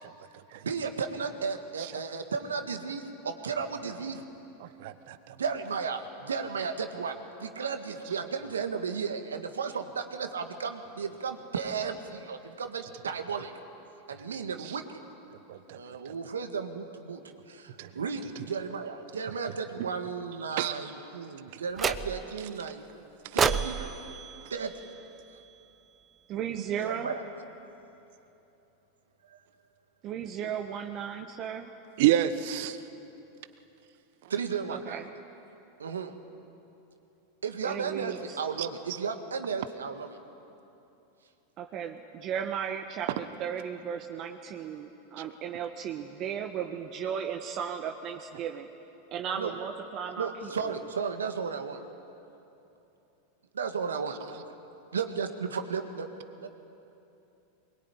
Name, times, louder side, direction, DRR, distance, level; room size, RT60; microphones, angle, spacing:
voice 1, 0.6-4.2 5.4-13.5 14.1-15.0 15.7-17.2 17.5-22.8 23.3-24.2 24.5-24.7 26.8-27.2 34.3-35.0 35.8-36.1 37.4-40.2 49.3-49.6 50.2-51.8 53.5-54.5 54.9-56.1 56.4-56.5, right 5 dB, 85° right, 7 dB, 1.8 m, -34 dB
voice 2, 4.8-5.3 15.5-15.8 17.8-17.9 20.6-20.7 32.0-32.8 38.6-38.7, right 12 dB, 60° right, 11 dB, 1.1 m, -27 dB
sound 1, 21.8-22.4 23.4-25.6, right 6 dB, 25° right, 0.9 m, -31 dB
voice 3, 26.3-27.2 30.0-31.7 34.7-35.1 37.6-38.4 41.6-48.7 49.1-50.8, right 8 dB, 45° right, 4 dB, 1.4 m, -35 dB
22.0 x 22.0 x 9.9 m, 2.9 s
hypercardioid pair, 95°, 0 cm